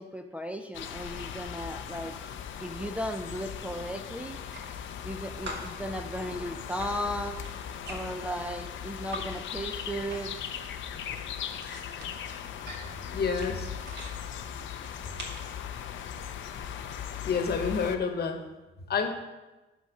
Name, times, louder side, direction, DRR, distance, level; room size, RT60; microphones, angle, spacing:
voice 1, 0.0-2.1 2.6-4.4 5.0-7.4 7.9-10.4, equal, 5° right, 5 dB, 0.5 m, -36 dB
sound 1, 0.7-18.0, left 8 dB, 75° left, 0.6 m, -39 dB
sound 2, 4.3-5.1 5.5-9.3 9.6-10.5 10.7-14.2 14.8-15.5, right 1 dB, 60° right, 1.9 m, -44 dB
voice 2, 13.1-13.7 17.2-18.4 18.9-19.1, left 5 dB, 55° left, 6 dB, 1.1 m, -28 dB
6.2 x 5.5 x 6.4 m, 1.1 s
cardioid pair, 90°, 20 cm